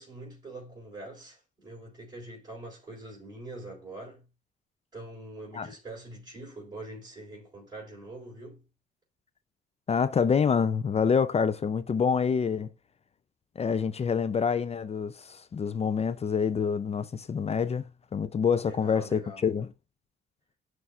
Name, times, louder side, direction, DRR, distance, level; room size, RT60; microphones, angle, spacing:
voice 1, 0.0-4.3 4.9-8.6 18.6-19.4, right 2 dB, 20° right, 3.9 m, -44 dB
voice 2, 9.9-12.7 13.6-19.7, left 6 dB, 30° left, 0.4 m, -27 dB
12.0 x 4.8 x 2.4 m
cardioid pair, 90°, 20 cm